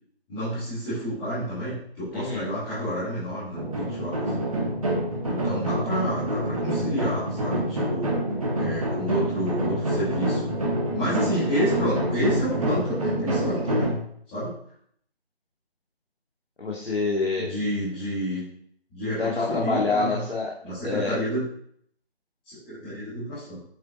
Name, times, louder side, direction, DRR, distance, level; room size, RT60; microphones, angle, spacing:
voice 1, 0.3-4.2 5.2-8.2 8.5-10.5 10.9-13.9 14.3-14.5 17.4-18.4 18.9-20.2 20.6-21.4 22.4-23.6, equal, 10° left, -17 dB, 2.5 m, -30 dB
voice 2, 2.1-2.5 16.6-17.6 19.2-20.5 20.8-21.1, left 3 dB, 70° left, -4 dB, 2.0 m, -26 dB
Davul Room S Percussion Bass Drum, 3.6-13.9, right 1 dB, 35° right, 1.8 m, -27 dB
8.6 x 8.3 x 2.6 m, 0.65 s
figure-of-eight pair, 170°, 32 cm